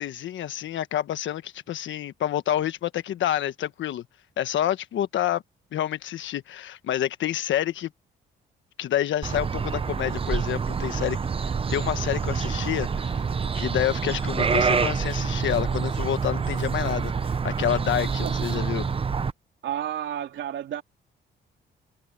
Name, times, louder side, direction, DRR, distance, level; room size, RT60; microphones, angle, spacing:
voice 1, 0.0-4.0 4.4-5.4 5.7-7.9 8.8-11.2 11.7-13.1 13.5-18.9, left 11 dB, 75° left, 1.3 m, -28 dB
sound 1, 9.2-19.3, right 5 dB, 30° right, 0.7 m, -27 dB
voice 2, 18.2-18.6 19.6-20.8, right 10 dB, 70° right, 3.2 m, -32 dB
cardioid pair, 90°, 20 cm